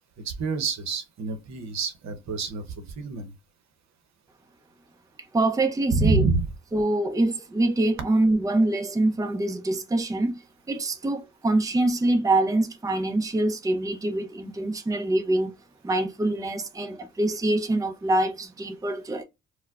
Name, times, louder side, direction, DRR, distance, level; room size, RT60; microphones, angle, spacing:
voice 1, 0.2-3.3 5.9-6.5, right 4 dB, 65° right, 0.9 m, -27 dB
voice 2, 5.3-6.3 6.7-10.4 10.7-15.5 15.8-19.2, right 2 dB, 10° right, 0.6 m, -25 dB
4.3 x 2.2 x 2.4 m
cardioid pair, 90°, 30 cm